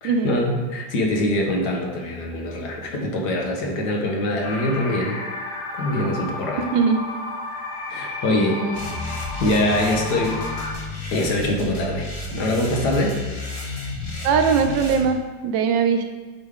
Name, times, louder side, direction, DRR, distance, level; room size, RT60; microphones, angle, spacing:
voice 1, 0.0-5.2 5.8-6.7 7.9-8.6 9.4-10.3 11.1-13.2, left 1 dB, 65° left, 1 dB, 1.6 m, -23 dB
sound 1, 4.4-10.7, left 2 dB, 85° left, 1.6 m, -32 dB
voice 2, 6.6-7.0 8.3-9.1 14.2-16.0, right 5 dB, 80° right, 7 dB, 1.4 m, -21 dB
sound 2, 8.7-15.0, left 2 dB, 45° left, 1.8 m, -31 dB
8.3 x 5.2 x 3.6 m, 1.4 s
omnidirectional pair, 2.0 m